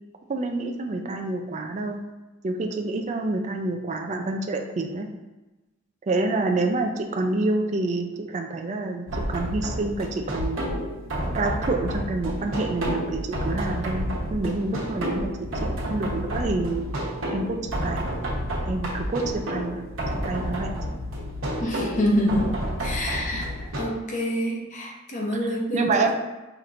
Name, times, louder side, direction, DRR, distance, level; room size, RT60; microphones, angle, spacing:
voice 1, 0.3-2.0 2.4-5.1 6.1-10.6 11.3-16.9 17.3-17.6 17.8-18.0 18.7-19.8 20.2-20.7 23.3-23.4 25.4-26.1, right 2 dB, 35° right, 3 dB, 0.4 m, -27 dB
sound 1, 9.1-23.8, equal, 85° right, 1.2 m, -30 dB
sound 2, 9.2-9.6 10.4-10.8 11.6-12.0 12.8-13.2 13.9-14.4 15.1-15.5 16.4-16.8 17.6-18.0 19.0-19.4 20.1-20.5, equal, 65° left, 0.5 m, -33 dB
voice 2, 21.6-22.5 22.8-23.5 23.8-26.1, equal, 40° left, -1 dB, 0.9 m, -26 dB
5.7 x 2.9 x 2.5 m, 1.1 s
head